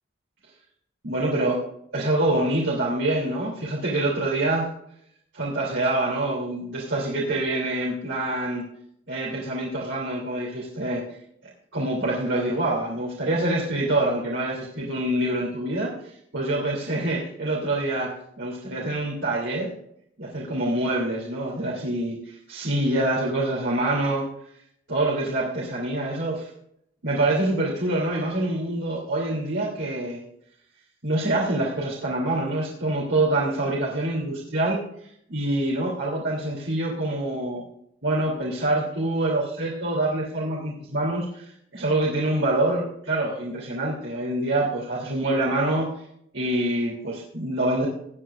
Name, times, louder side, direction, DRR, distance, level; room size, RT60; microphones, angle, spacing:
voice 1, 1.0-1.6 1.9-4.7 5.3-8.6 9.1-11.0 11.7-18.1 18.4-19.7 20.2-24.3 24.9-26.5 27.0-30.2 31.0-37.6 38.0-45.9 46.3-47.9, right 1 dB, 75° right, -5 dB, 3.0 m, -26 dB
19.0 x 9.4 x 2.5 m, 0.72 s
head